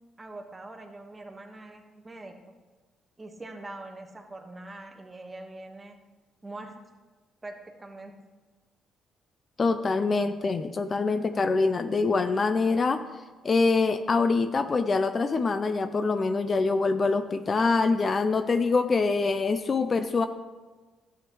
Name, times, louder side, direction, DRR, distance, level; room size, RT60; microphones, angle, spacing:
voice 1, 0.2-2.4 3.2-5.9 6.4-6.7 7.4-8.2, right 2 dB, 20° right, 2 dB, 1.4 m, -43 dB
voice 2, 9.6-13.0 13.4-20.3, left 4 dB, 40° left, 10 dB, 0.5 m, -25 dB
12.0 x 8.0 x 3.1 m, 1.3 s
cardioid pair, 90°, 0 cm